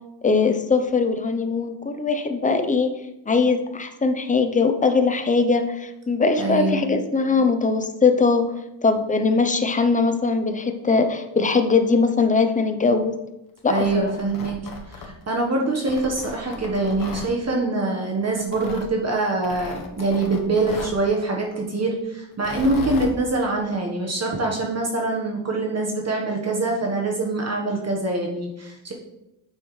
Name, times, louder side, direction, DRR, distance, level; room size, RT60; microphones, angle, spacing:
voice 1, 0.2-3.0 3.3-8.5 8.8-13.2 13.6-14.1, left 4 dB, 15° left, 8 dB, 0.6 m, -21 dB
voice 2, 6.4-6.9 13.7-14.6 14.9-28.9, right 2 dB, 30° right, -1 dB, 1.3 m, -24 dB
Tearing, 13.6-15.4 15.9-17.3 18.4-18.9 19.4-21.0 22.3-23.1, left 4 dB, 45° left, 1.2 m, -36 dB
9.2 x 6.2 x 3.2 m, 0.90 s
cardioid pair, 125°, 48 cm